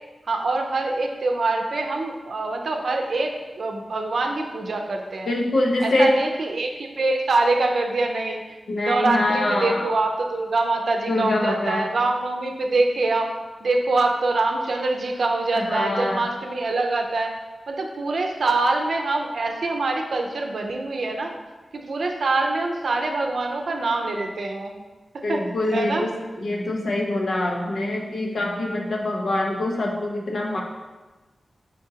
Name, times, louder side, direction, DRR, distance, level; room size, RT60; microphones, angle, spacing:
voice 1, 0.3-5.3 5.8-8.4 8.8-13.3 13.6-17.3 17.7-21.3 21.7-24.8 25.1-25.4 25.7-26.1, right 2 dB, 75° right, 2 dB, 0.5 m, -24 dB
voice 2, 5.3-6.2 8.7-9.9 11.1-11.9 15.6-16.2 25.2-30.6, left 1 dB, 75° left, -1 dB, 0.7 m, -24 dB
5.1 x 3.7 x 2.8 m, 1.2 s
wide cardioid pair, 70°, 0 cm